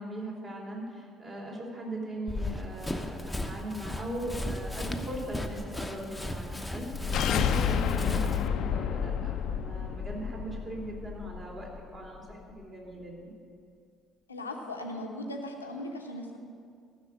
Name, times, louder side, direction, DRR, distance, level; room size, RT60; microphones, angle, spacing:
voice 1, 0.0-13.3, right 1 dB, 35° right, -2 dB, 3.6 m, -39 dB
Run, 2.3-8.5, left 1 dB, 5° left, 1.0 m, -36 dB
sound 1, 6.8-11.8, left 7 dB, 55° left, 0.6 m, -30 dB
voice 2, 14.3-16.4, left 1 dB, 85° left, 2 dB, 0.8 m, -38 dB
14.0 x 6.8 x 7.8 m, 2.3 s
figure-of-eight pair, 50°, 0 cm